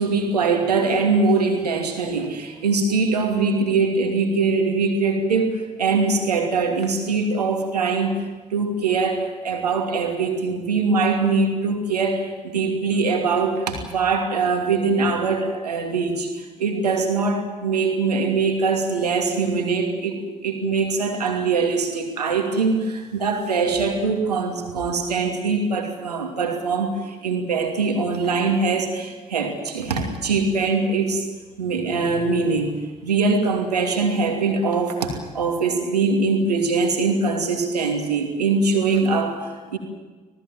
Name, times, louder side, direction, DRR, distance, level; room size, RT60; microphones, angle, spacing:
voice 1, 0.0-31.3 31.6-39.8, right 4 dB, 85° right, 3 dB, 2.7 m, -22 dB
26.5 x 18.5 x 7.8 m, 1.4 s
figure-of-eight pair, 50°, 20 cm